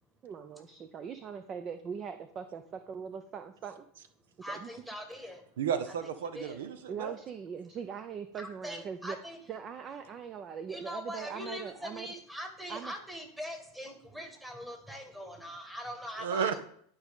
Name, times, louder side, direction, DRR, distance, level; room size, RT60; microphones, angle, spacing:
voice 1, 0.2-3.9 4.4-4.7 6.9-9.2 9.5-12.1 12.7-12.9, right 7 dB, 35° right, 9 dB, 0.5 m, -41 dB
voice 2, 4.4-5.4 5.9-6.0 6.3-6.9 8.4-9.4 10.7-16.6, equal, 5° right, 4 dB, 1.6 m, -42 dB
voice 3, 5.6-7.1 16.2-16.6, right 7 dB, 85° right, 11 dB, 0.7 m, -32 dB
11.5 x 4.8 x 3.6 m, 0.65 s
supercardioid pair, 115°, 0 cm